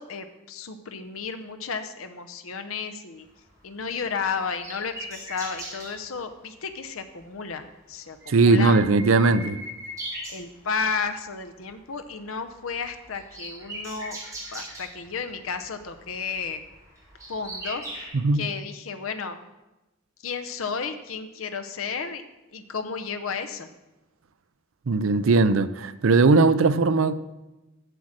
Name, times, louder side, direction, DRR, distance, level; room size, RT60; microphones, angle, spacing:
voice 1, 0.0-3.3 3.6-8.8 9.2-9.4 10.3-14.2 14.5-16.6 17.3-18.0 18.3-19.4 20.2-22.2 22.5-23.7, left 5 dB, 85° left, 0.7 m, -33 dB
sound 1, 3.4-6.0 6.9-7.1 7.5-7.6 7.9-11.0 11.4-11.7 12.0-18.1, right 1 dB, 15° right, 3.8 m, -40 dB
voice 2, 8.3-9.6 18.1-18.4 24.9-27.1, right 3 dB, 75° right, 0.5 m, -19 dB
7.9 x 7.3 x 6.4 m
head